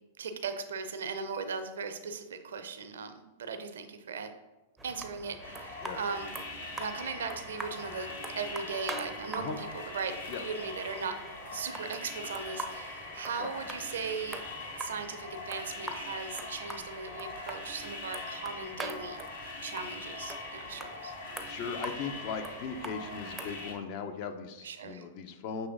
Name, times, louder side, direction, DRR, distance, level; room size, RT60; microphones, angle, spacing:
voice 1, 0.2-4.3 4.8-6.3 6.7-11.2 11.5-14.4 14.8-19.2 19.6-21.1 24.6-25.0, right 5 dB, 70° right, 8 dB, 0.4 m, -38 dB
sound 1, 4.8-23.7, right 2 dB, 10° right, 0.4 m, -45 dB
sound 2, 5.4-23.7, left 2 dB, 65° left, 0.9 m, -42 dB
sound 3, 7.6-14.9, left 1 dB, 85° left, 1.3 m, -56 dB
voice 2, 21.2-25.7, left 6 dB, 45° left, 8 dB, 0.4 m, -38 dB
5.9 x 3.1 x 2.5 m, 1.1 s
figure-of-eight pair, 100°, 0 cm